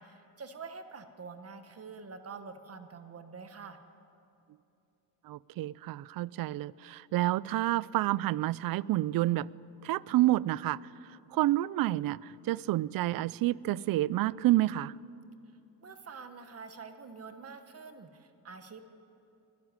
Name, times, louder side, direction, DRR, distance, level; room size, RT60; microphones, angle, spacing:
voice 1, 0.0-3.8 15.8-18.8, right 5 dB, 35° right, 1.3 m, -46 dB
voice 2, 5.2-9.5 9.8-10.8 11.3-14.9, right 16 dB, 60° right, 0.5 m, -29 dB
22.0 x 12.5 x 9.6 m
cardioid pair, 120°, 41 cm